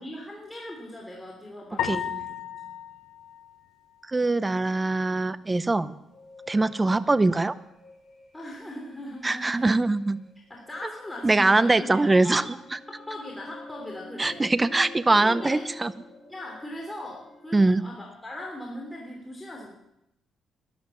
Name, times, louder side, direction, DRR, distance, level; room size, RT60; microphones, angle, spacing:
voice 1, 0.0-2.7 6.8-7.1 8.3-9.7 10.5-12.5 12.9-14.4 15.1-15.7 16.3-19.7, left 1 dB, 15° left, -1 dB, 3.2 m, -39 dB
sound 1, 1.8-4.3, left 9 dB, 85° left, 1.3 m, -34 dB
voice 2, 4.1-5.9 6.5-7.5 9.2-10.2 11.2-12.4 14.2-15.9 17.5-17.8, right 2 dB, 20° right, 15 dB, 0.7 m, -22 dB
sound 2, 6.0-17.5, left 2 dB, 30° left, 5.3 m, -48 dB
13.0 x 11.5 x 7.1 m, 0.83 s
cardioid pair, 90°, 0 cm